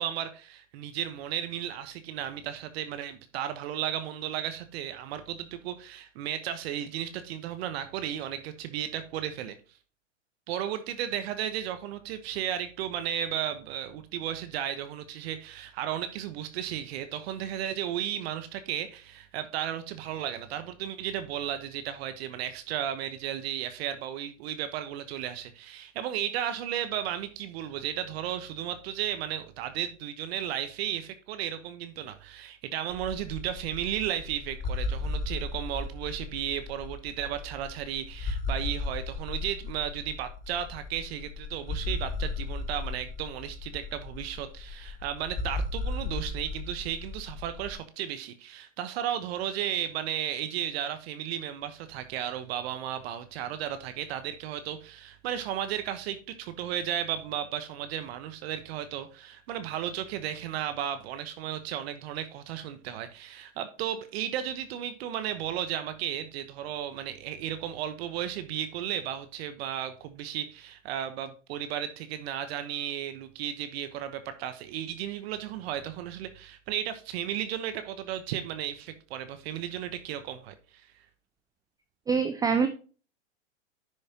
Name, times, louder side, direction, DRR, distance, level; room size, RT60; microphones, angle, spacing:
voice 1, 0.0-9.6 10.5-80.9, right 10 dB, 50° right, 1.2 m, -34 dB
sound 1, 32.9-47.7, left 3 dB, 20° left, 1.3 m, -36 dB
voice 2, 82.1-82.7, right 5 dB, 10° right, 0.5 m, -24 dB
10.5 x 6.3 x 2.9 m
hypercardioid pair, 115°, 38 cm